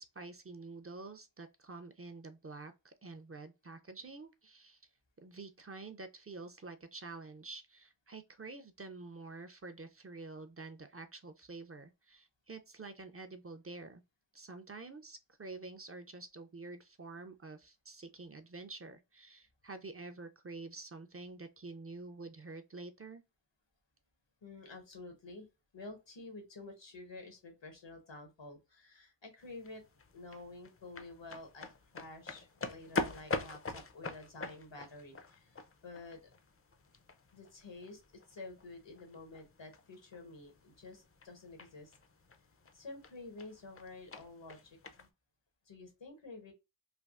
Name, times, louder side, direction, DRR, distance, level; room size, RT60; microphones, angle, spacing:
voice 1, 0.0-4.8 5.2-14.0 14.3-23.2, right 3 dB, 35° right, 0.4 m, -48 dB
voice 2, 24.4-25.5 25.7-29.8 30.1-36.3 37.3-41.9 42.7-45.1 45.7-46.5, left 2 dB, 90° left, 1.0 m, -50 dB
sound 1, 29.4-45.1, left 3 dB, 35° left, 0.4 m, -45 dB
3.3 x 2.3 x 2.3 m
wide cardioid pair, 40°, 44 cm